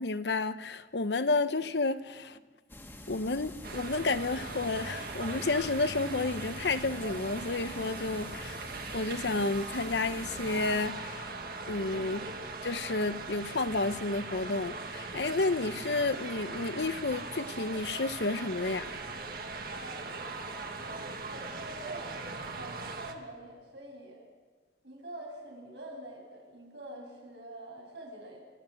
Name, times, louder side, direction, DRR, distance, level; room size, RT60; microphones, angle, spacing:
voice 1, 0.0-2.4 3.1-8.6 8.9-11.3 11.7-12.3 12.6-18.9, left 3 dB, 75° left, 0.9 m, -31 dB
sound 1, 2.7-10.9, left 1 dB, 10° left, 1.8 m, -47 dB
sound 2, 3.6-23.2, right 3 dB, 55° right, 1.9 m, -40 dB
voice 2, 19.7-20.7 21.2-24.3 24.8-28.4, right 1 dB, 80° right, 7.8 m, -46 dB
29.5 x 14.0 x 7.8 m
head